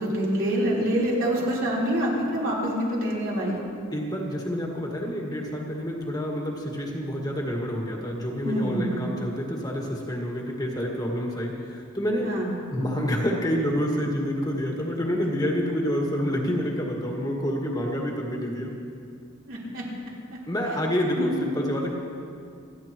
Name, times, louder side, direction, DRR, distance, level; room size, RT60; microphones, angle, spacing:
voice 1, 0.0-3.6 8.4-9.0 12.2-12.5 19.5-19.8 20.3-20.4 21.2-21.4, equal, 65° right, -6 dB, 3.8 m, -26 dB
voice 2, 3.9-12.3 12.7-18.7 20.5-21.9, equal, 20° left, -1 dB, 1.7 m, -28 dB
29.0 x 10.0 x 3.0 m, 2.4 s
head